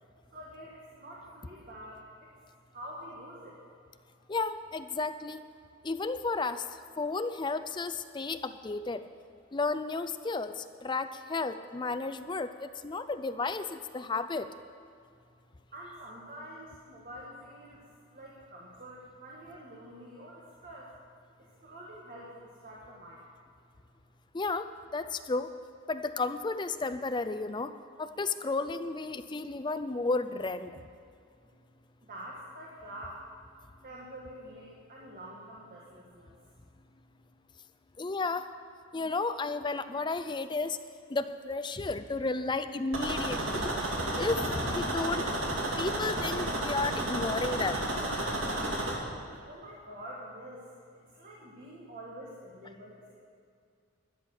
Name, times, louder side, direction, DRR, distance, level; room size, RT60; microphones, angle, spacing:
voice 1, 0.3-2.3 2.7-3.6 15.7-17.8 18.1-20.9 21.4-23.3 32.0-33.2 33.8-36.3 49.5-53.1, right 1 dB, 45° right, -4 dB, 1.8 m, -47 dB
voice 2, 4.3-5.4 5.8-6.7 7.0-9.0 9.5-14.5 24.3-25.6 25.9-27.7 28.0-30.8 38.0-38.5 38.9-40.8 41.1-47.8, left 3 dB, 20° left, 11 dB, 0.4 m, -33 dB
sound 1, 42.9-48.9, right 1 dB, 65° right, 2.3 m, -32 dB
12.5 x 10.0 x 6.4 m, 2.4 s
head